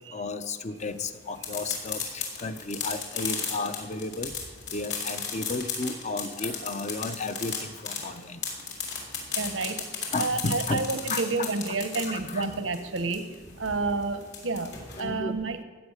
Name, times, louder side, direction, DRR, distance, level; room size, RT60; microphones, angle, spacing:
voice 1, 0.1-4.3 4.7-8.4 10.1-10.8 11.1-11.5 12.1-12.6 14.6-14.7 15.0-15.3, left 3 dB, 35° left, 10 dB, 0.8 m, -33 dB
sound 1, 0.8-15.0, left 6 dB, 65° left, 3.4 m, -35 dB
voice 2, 9.4-9.8 10.2-13.2 13.6-14.7 15.0-15.6, right 3 dB, 90° right, 8 dB, 1.1 m, -29 dB
16.0 x 9.0 x 6.6 m, 1.4 s
head